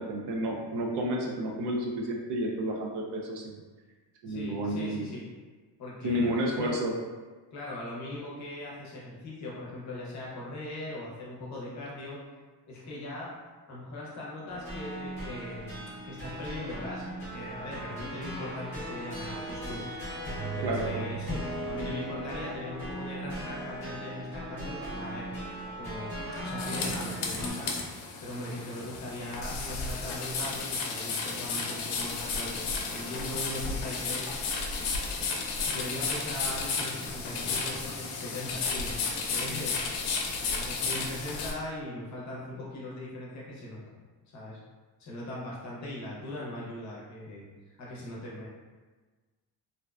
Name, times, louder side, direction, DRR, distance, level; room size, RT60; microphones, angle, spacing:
voice 1, 0.0-3.6 4.2-5.0 6.0-6.9 20.6-21.0, right 1 dB, 70° right, 0 dB, 0.5 m, -31 dB
voice 2, 4.3-5.3 5.8-6.8 7.5-12.2 12.7-13.3 13.7-20.2 20.6-25.3 25.6-26.1 26.4-27.9 28.2-34.3 35.7-39.8 40.5-43.8 44.3-44.6 45.0-47.4 47.8-48.5, left 1 dB, 40° left, -5 dB, 0.6 m, -40 dB
sound 1, 14.5-27.5, right 1 dB, 5° left, 0.8 m, -38 dB
sound 2, 26.6-41.5, left 4 dB, 85° left, 0.5 m, -33 dB
2.5 x 2.1 x 2.3 m, 1.3 s
cardioid pair, 180°, 43 cm